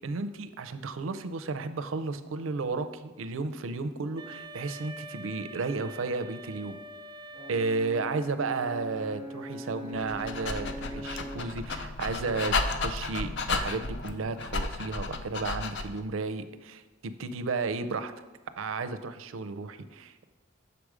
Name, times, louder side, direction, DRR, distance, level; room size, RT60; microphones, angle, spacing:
voice 1, 0.0-6.8 7.5-18.1 18.6-20.2, right 3 dB, 85° right, 11 dB, 0.5 m, -33 dB
Wind instrument woodwind instrument, 4.2-8.4, right 2 dB, 20° right, 0.4 m, -45 dB
Brass instrument, 7.3-11.6, equal, 25° left, 1.9 m, -41 dB
Dog, 9.9-16.0, left 3 dB, 60° left, 0.5 m, -33 dB
6.9 x 5.0 x 4.8 m, 1.2 s
head